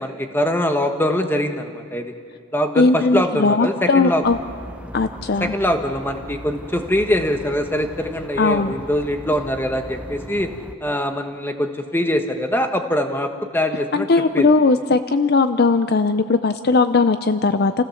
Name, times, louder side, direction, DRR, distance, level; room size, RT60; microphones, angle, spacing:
voice 1, 0.0-2.1 2.5-4.2 5.4-10.5 10.8-14.1 14.3-14.5, left 1 dB, 10° left, 5 dB, 1.2 m, -23 dB
voice 2, 2.8-4.4 4.9-5.5 8.4-8.7 13.9-17.7, left 3 dB, 45° left, 11 dB, 0.5 m, -18 dB
sound 1, 4.2-10.7, equal, 5° right, 0.7 m, -38 dB
28.5 x 15.5 x 7.1 m, 2.1 s
head